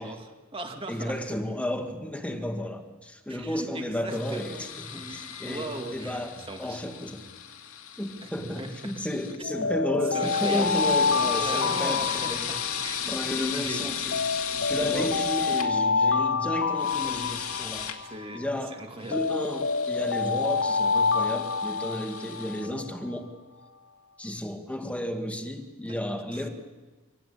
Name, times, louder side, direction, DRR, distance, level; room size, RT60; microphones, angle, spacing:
voice 1, 0.0-1.2 3.3-6.8 8.2-9.0 9.5-9.7 10.1-10.8 11.2-14.0 14.5-15.2 18.1-18.4 18.7-19.2 25.9-26.0 26.3-26.5, right 2 dB, 25° right, 4 dB, 2.4 m, -38 dB
voice 2, 0.9-7.3 8.0-12.5 13.1-14.2 14.6-17.9 18.3-23.3 24.2-26.5, left 1 dB, 5° left, 5 dB, 2.0 m, -33 dB
sound 1, 4.1-9.4 10.1-15.7 16.7-18.0 19.0-22.7, left 9 dB, 80° left, 2.5 m, -36 dB
Alarm, 9.4-13.6 14.1-18.6 19.1-22.9, left 4 dB, 65° left, 0.8 m, -27 dB
25.5 x 18.0 x 8.8 m, 1.3 s
head